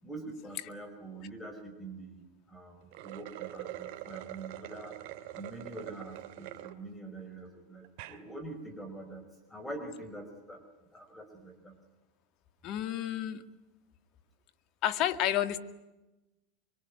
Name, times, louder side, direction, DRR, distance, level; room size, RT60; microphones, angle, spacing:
voice 1, 0.0-4.9 5.3-9.2 9.5-10.6 10.9-11.8, right 2 dB, 10° left, 6 dB, 4.8 m, -45 dB
sound 1, 2.8-6.7 7.2-7.3 7.8-8.2, right 14 dB, 60° right, 2.4 m, -44 dB
voice 2, 12.6-13.4 14.8-15.6, left 12 dB, 50° left, 10 dB, 2.0 m, -30 dB
25.0 x 24.0 x 9.6 m, 1.0 s
hypercardioid pair, 110°, 0 cm